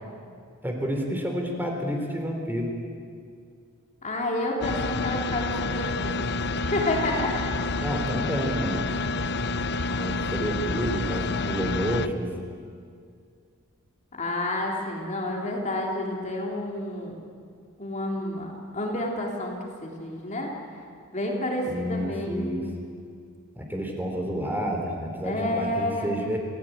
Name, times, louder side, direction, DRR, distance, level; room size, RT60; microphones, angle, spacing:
voice 1, 0.6-2.7 7.8-8.9 10.0-12.3 21.6-22.6 23.5-26.4, equal, 10° right, 1 dB, 3.8 m, -29 dB
voice 2, 4.0-6.3 6.7-7.4 14.1-17.2 17.8-20.5 21.1-22.5 25.2-26.1, left 1 dB, 35° left, -1 dB, 3.3 m, -29 dB
sound 1, 4.6-12.1, left 3 dB, 55° left, 0.8 m, -28 dB
27.5 x 17.0 x 9.3 m, 2.3 s
head